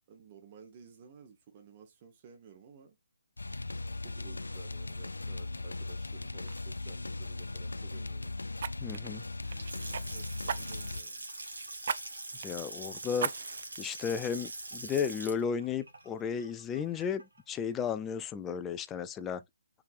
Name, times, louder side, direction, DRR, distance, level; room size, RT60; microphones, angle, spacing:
voice 1, 0.1-3.0 4.0-8.4 9.2-11.2, right 6 dB, 35° right, 1.2 m, -54 dB
sound 1, 3.4-11.0, left 2 dB, 80° left, 0.3 m, -38 dB
Fire, 5.9-6.1 6.5-6.7 8.6-10.0 10.5-11.0 11.8-12.0 12.4-12.5 13.2-13.8 14.3-14.4, right 6 dB, 50° right, 0.4 m, -36 dB
voice 2, 8.8-9.2 12.4-13.3 13.8-19.4, left 7 dB, 15° left, 0.4 m, -34 dB
Water tap faucet / Sink (filling or washing) / Splash splatter, 9.4-17.4, right 2 dB, 75° right, 1.8 m, -44 dB
4.7 x 3.4 x 2.5 m
figure-of-eight pair, 140°, 0 cm